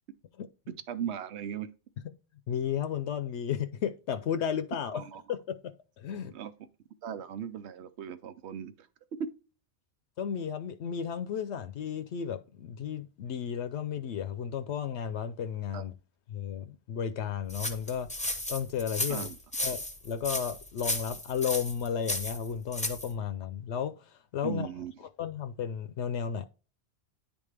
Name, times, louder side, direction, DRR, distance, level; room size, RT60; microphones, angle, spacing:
voice 1, 0.7-1.7 4.9-5.2 6.3-6.5 7.0-8.7 15.7-15.8 19.1-19.4 24.4-24.9, right 9 dB, 75° right, 0.9 m, -38 dB
voice 2, 2.5-5.0 5.3-6.3 10.2-15.9 16.3-18.1 18.5-19.3 19.6-24.7 25.2-26.4, left 8 dB, 75° left, 0.8 m, -33 dB
sound 1, 17.5-23.1, left 1 dB, 10° left, 0.6 m, -34 dB
10.0 x 3.5 x 3.3 m
omnidirectional pair, 1.2 m